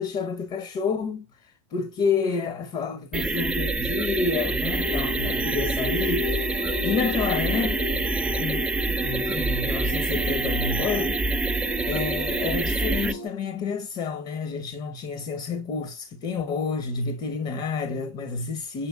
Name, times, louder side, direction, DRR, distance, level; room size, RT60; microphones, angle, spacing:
voice 1, 0.0-6.3 6.8-8.0 8.4-11.2 11.9-18.9, left 5 dB, 45° left, 0.9 m, -29 dB
sound 1, 3.1-13.1, right 3 dB, 10° right, 0.3 m, -26 dB
sound 2, 4.7-13.3, left 7 dB, 85° left, 2.7 m, -36 dB
6.7 x 2.9 x 2.4 m
supercardioid pair, 115°, 15 cm